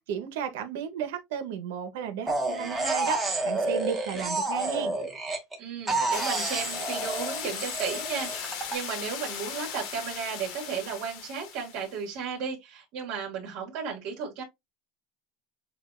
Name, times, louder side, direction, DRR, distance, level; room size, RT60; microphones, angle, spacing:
voice 1, 0.0-5.0, right 8 dB, 85° right, 1.0 m, -34 dB
sound 1, 2.3-5.6 5.9-8.8, right 2 dB, 5° right, 1.1 m, -29 dB
voice 2, 5.6-14.4, right 6 dB, 55° right, 2.0 m, -34 dB
sound 2, 6.1-12.0, left 8 dB, 60° left, 1.1 m, -37 dB
7.1 x 2.5 x 2.5 m
cardioid pair, 160°, 0 cm